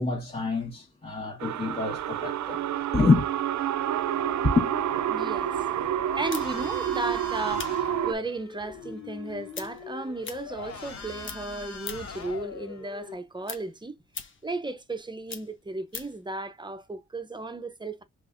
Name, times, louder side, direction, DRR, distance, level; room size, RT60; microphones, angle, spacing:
voice 1, 0.0-2.6 2.9-3.2 4.5-4.7, left 3 dB, 20° left, 1.5 m, -26 dB
sound 1, 1.4-8.1, right 11 dB, 75° right, 0.5 m, -29 dB
sound 2, 4.0-13.1, left 6 dB, 60° left, 2.9 m, -41 dB
voice 2, 5.1-14.0 14.4-18.0, right 2 dB, 15° right, 0.7 m, -35 dB
sound 3, 6.3-11.0 11.2-12.2 12.6-16.2, left 6 dB, 40° left, 0.9 m, -42 dB
5.2 x 3.5 x 2.5 m
cardioid pair, 115°, 30 cm